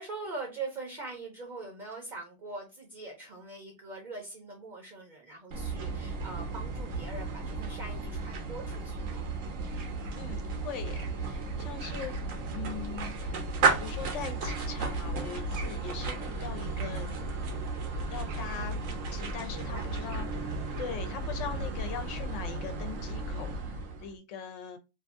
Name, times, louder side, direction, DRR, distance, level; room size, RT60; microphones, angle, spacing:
voice 1, 0.0-9.3 18.8-19.1 19.7-19.9 20.4-20.6, right 3 dB, 45° right, 0.7 m, -42 dB
sound 1, 5.5-24.1, right 3 dB, 85° right, 1.1 m, -34 dB
voice 2, 10.1-13.4 13.8-17.3 18.1-18.8 19.1-24.8, left 7 dB, 70° left, 0.9 m, -41 dB
2.7 x 2.4 x 2.4 m
omnidirectional pair, 1.3 m